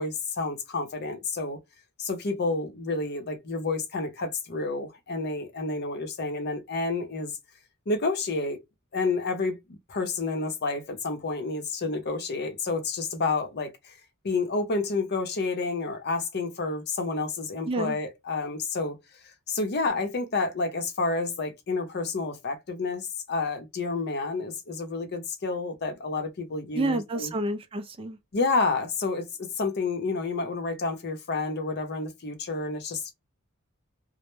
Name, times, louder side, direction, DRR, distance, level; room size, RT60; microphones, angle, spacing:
voice 1, 0.0-1.6 2.0-7.3 7.9-8.6 8.9-13.9 14.2-19.0 19.2-27.3 28.3-33.1, left 3 dB, 50° left, 0.6 m, -29 dB
voice 2, 17.7-18.0 26.7-28.2, right 2 dB, 25° right, 0.3 m, -29 dB
2.1 x 2.0 x 3.0 m
head